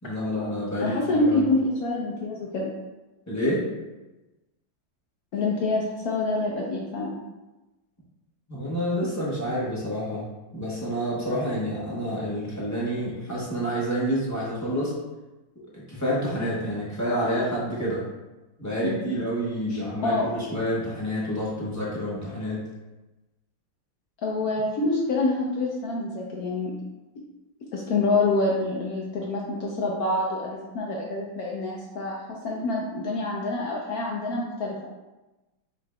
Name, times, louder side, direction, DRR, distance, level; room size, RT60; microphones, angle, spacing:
voice 1, 0.0-1.5 3.3-3.7 8.5-10.2 10.5-14.9 15.5-18.0 18.6-22.6, equal, 15° left, -7 dB, 0.7 m, -28 dB
voice 2, 0.8-2.7 5.3-7.2 18.8-19.0 19.7-20.3 24.2-26.7 27.7-34.8, left 2 dB, 70° left, -2 dB, 0.9 m, -26 dB
5.2 x 3.7 x 2.3 m, 1.1 s
omnidirectional pair, 2.1 m